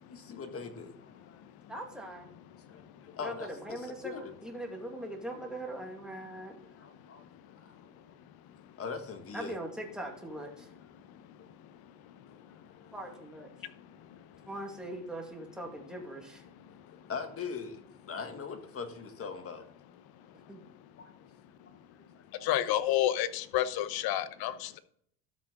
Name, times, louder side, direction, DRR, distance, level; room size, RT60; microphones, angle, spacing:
voice 1, 0.0-1.4 2.7-4.4 6.8-7.2 7.6-7.7 8.8-9.6 11.4-11.5 12.5-13.0 14.3-14.6 16.7-17.8 18.1-19.6 21.0-21.1 21.9-22.0 22.4-22.5, left 5 dB, 35° left, 6 dB, 1.8 m, -42 dB
voice 2, 1.7-2.3 3.2-3.3 3.6-6.6 9.3-10.7 12.9-13.5 14.5-16.4 20.5-20.6, right 1 dB, ahead, 0 dB, 2.2 m, -41 dB
voice 3, 22.4-24.8, left 12 dB, 60° left, 13 dB, 1.0 m, -29 dB
13.0 x 6.2 x 3.9 m, 0.65 s
cardioid pair, 115°, 41 cm